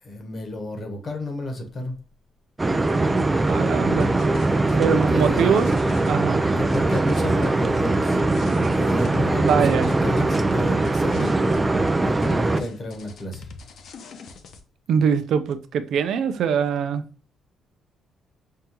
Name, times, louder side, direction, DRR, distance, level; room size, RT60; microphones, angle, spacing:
voice 1, 0.0-2.0 4.7-5.8 6.6-8.2 8.7-11.4 12.0-13.5 16.6-17.1, left 1 dB, 45° left, 1.3 m, -31 dB
sound 1, 2.6-12.6, right 2 dB, 20° right, 0.4 m, -21 dB
voice 2, 3.4-4.1 4.8-5.7 6.1-6.4 9.4-9.9 14.9-17.0, right 7 dB, 70° right, 0.5 m, -22 dB
sound 2, 3.7-6.2 6.7-9.6 9.8-11.6 11.9-14.6, left 4 dB, 70° left, 0.6 m, -42 dB
5.5 x 2.2 x 2.9 m
cardioid pair, 90°, 0 cm